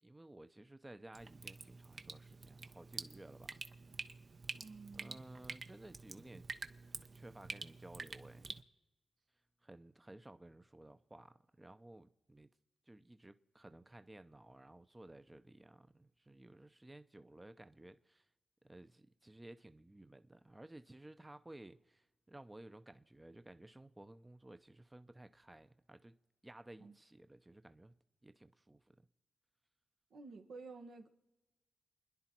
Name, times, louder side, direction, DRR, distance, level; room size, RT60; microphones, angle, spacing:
voice 1, 0.0-3.5 4.9-6.6 7.1-8.5 9.6-12.5 12.9-18.3 18.6-26.2 26.4-27.9 28.2-29.0, right 1 dB, 20° right, 0.7 m, -56 dB
Drip, 1.1-8.6, right 4 dB, 50° right, 0.9 m, -48 dB
voice 2, 4.6-5.2 26.8-26.9 30.1-31.1, right 4 dB, 80° right, 1.6 m, -51 dB
28.0 x 10.5 x 4.5 m
cardioid pair, 55°, 0 cm